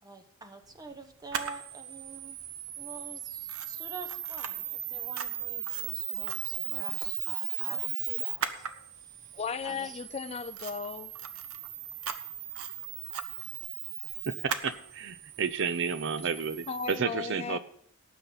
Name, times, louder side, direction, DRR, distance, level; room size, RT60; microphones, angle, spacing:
voice 1, 0.0-2.4 2.8-8.7 9.0-10.0, right 3 dB, 20° right, 6 dB, 1.2 m, -47 dB
Camera, 1.3-17.0, right 9 dB, 85° right, 0.9 m, -37 dB
voice 2, 9.3-11.1 16.2-16.3 16.7-17.6, left 5 dB, 30° left, 12 dB, 0.4 m, -36 dB
voice 3, 14.6-17.6, right 5 dB, 60° right, 13 dB, 0.6 m, -31 dB
18.0 x 8.4 x 4.0 m, 0.66 s
head